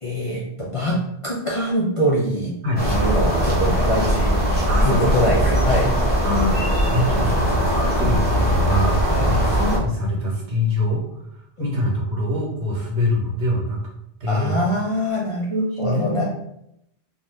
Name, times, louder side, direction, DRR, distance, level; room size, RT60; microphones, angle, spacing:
voice 1, 0.0-2.5 2.8-4.3 4.8-5.9 9.1-9.4 11.6-11.7 14.3-16.2, equal, 55° left, -4 dB, 0.3 m, -23 dB
sound 1, 2.8-9.8, equal, 10° left, 0.7 m, -20 dB
voice 2, 4.7-5.2 6.2-11.0 11.6-13.9 14.2-14.6 15.8-16.3, left 1 dB, 85° right, -2 dB, 1.1 m, -24 dB
2.6 x 2.2 x 3.2 m, 0.78 s
omnidirectional pair, 1.1 m